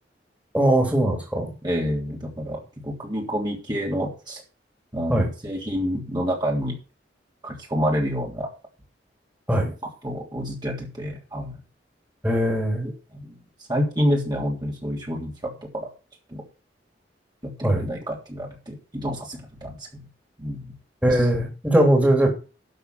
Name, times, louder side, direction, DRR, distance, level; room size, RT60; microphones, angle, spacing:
voice 1, 0.5-1.5 5.1-5.3 9.5-9.7 12.2-12.9 17.6-17.8 21.0-22.3, right 1 dB, 10° right, 1 dB, 3.4 m, -20 dB
voice 2, 1.6-4.4 4.9-6.8 7.4-8.5 9.6-11.6 12.8-13.4 13.7-15.9 16.3-16.4 17.4-20.0 20.4-20.7 21.1-21.3, equal, 25° right, -2 dB, 3.3 m, -28 dB
12.5 x 7.0 x 6.0 m, 0.33 s
head